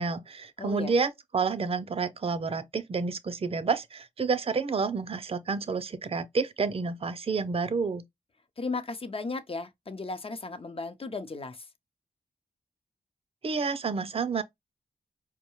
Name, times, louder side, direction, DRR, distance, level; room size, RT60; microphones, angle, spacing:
voice 1, 0.0-8.0 13.4-14.4, right 4 dB, 40° right, 0.5 m, -29 dB
voice 2, 0.6-0.9 8.6-11.6, left 3 dB, 40° left, 0.7 m, -35 dB
4.6 x 2.1 x 3.0 m
cardioid pair, 45°, 15 cm